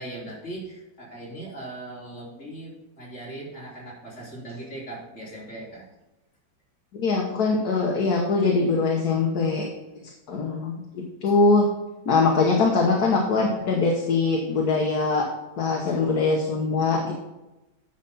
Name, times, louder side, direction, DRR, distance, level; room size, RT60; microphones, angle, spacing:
voice 1, 0.0-5.9 15.9-16.0, right 1 dB, 35° left, -6 dB, 3.5 m, -39 dB
voice 2, 6.9-9.7 10.0-11.7 12.0-15.3 15.6-17.1, left 3 dB, 55° left, -1 dB, 1.6 m, -22 dB
10.0 x 6.8 x 4.2 m, 0.99 s
omnidirectional pair, 2.2 m